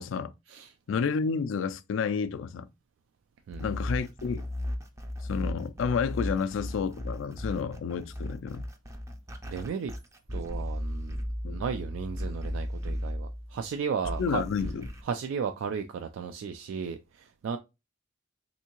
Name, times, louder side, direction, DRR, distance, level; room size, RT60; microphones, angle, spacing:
voice 1, 0.0-0.3 0.9-2.7 3.6-4.4 5.3-8.6 11.4-11.6 14.2-14.9, left 6 dB, 80° left, 0.3 m, -30 dB
sound 1, 3.5-13.6 14.0-15.0, equal, 15° right, 0.4 m, -35 dB
voice 2, 9.5-9.9 10.3-11.2 11.5-14.4 15.1-17.6, right 6 dB, 90° right, 0.3 m, -34 dB
3.5 x 2.7 x 2.8 m
head